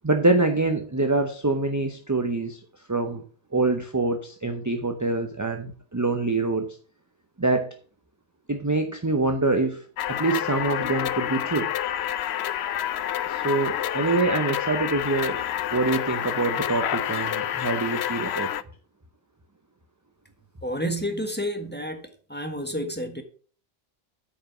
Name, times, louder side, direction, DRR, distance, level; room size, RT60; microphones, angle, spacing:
voice 1, 0.0-2.6 2.9-3.2 3.5-6.8 7.4-7.7 8.5-11.7 13.3-15.4 15.7-18.5, right 3 dB, 20° right, 5 dB, 0.8 m, -25 dB
sound 1, 10.0-18.6, left 11 dB, 85° left, 0.8 m, -28 dB
voice 2, 20.6-23.2, equal, 10° left, 5 dB, 1.5 m, -30 dB
8.8 x 5.3 x 6.1 m, 0.41 s
omnidirectional pair, 1.1 m